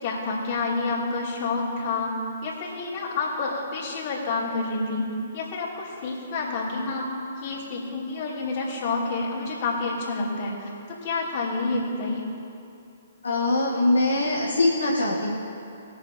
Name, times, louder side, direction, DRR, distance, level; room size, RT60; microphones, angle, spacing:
voice 1, 0.0-2.2 2.4-7.1 7.4-12.2, left 3 dB, 40° left, -5 dB, 2.8 m, -29 dB
voice 2, 13.2-15.4, left 2 dB, 75° left, -5 dB, 1.3 m, -22 dB
21.0 x 7.2 x 2.8 m, 2.7 s
figure-of-eight pair, 125°, 0 cm